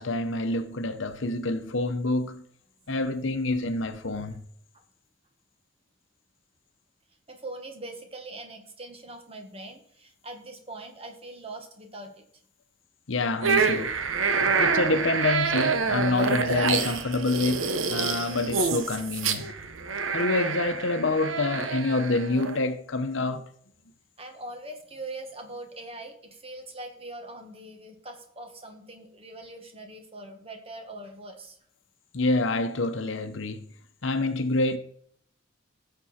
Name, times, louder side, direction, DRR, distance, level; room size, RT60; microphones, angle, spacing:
voice 1, 0.0-2.4 2.9-4.5 13.1-14.0 14.4-19.5 20.1-23.5 32.1-33.7 34.0-34.8, left 2 dB, 65° left, 0.9 m, -27 dB
voice 2, 7.3-12.3 24.2-31.6, right 2 dB, 30° right, 1.6 m, -42 dB
sound 1, 13.4-22.6, right 5 dB, 75° right, 1.1 m, -27 dB
16.0 x 6.9 x 4.4 m
head